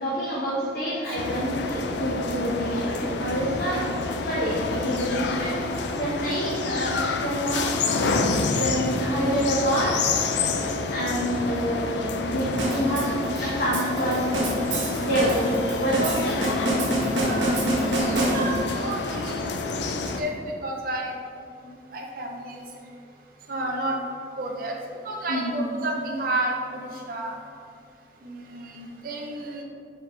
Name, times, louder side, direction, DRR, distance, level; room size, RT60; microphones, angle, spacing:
voice 1, 0.0-3.9 4.2-7.7 8.5-10.1 10.5-16.9 17.3-17.6 18.0-18.4 25.3-25.6, equal, 50° left, -8 dB, 1.1 m, -28 dB
sound 1, 1.2-20.2, left 3 dB, 70° left, 0.5 m, -28 dB
sound 2, 12.6-18.8, right 1 dB, 90° right, 1.4 m, -27 dB
voice 2, 17.1-17.5 18.1-19.5 19.8-21.2 21.6-22.6 23.5-24.0 24.4-24.8 25.0-27.4 28.2-29.6, right 1 dB, 50° right, 0 dB, 0.6 m, -31 dB
6.9 x 4.8 x 3.2 m, 2.4 s
head